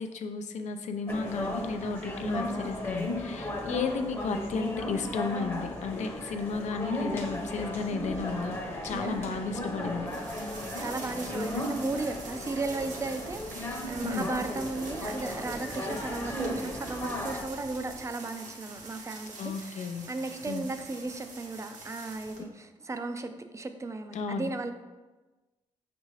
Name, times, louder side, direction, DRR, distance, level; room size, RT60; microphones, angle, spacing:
voice 1, 0.0-8.6 8.8-10.1 14.0-14.3 19.4-20.1 20.5-20.7 24.1-24.5, left 4 dB, 70° left, 6 dB, 0.4 m, -33 dB
sound 1, 1.1-17.4, left 1 dB, 20° left, 0.8 m, -35 dB
sound 2, 8.0-18.0, right 1 dB, 50° right, 0.8 m, -51 dB
voice 2, 8.9-9.4 10.8-24.7, right 3 dB, 25° right, 8 dB, 0.4 m, -35 dB
sound 3, 10.1-22.4, right 3 dB, 80° right, 0.8 m, -45 dB
5.4 x 2.5 x 3.1 m, 1.2 s
cardioid pair, 65°, 13 cm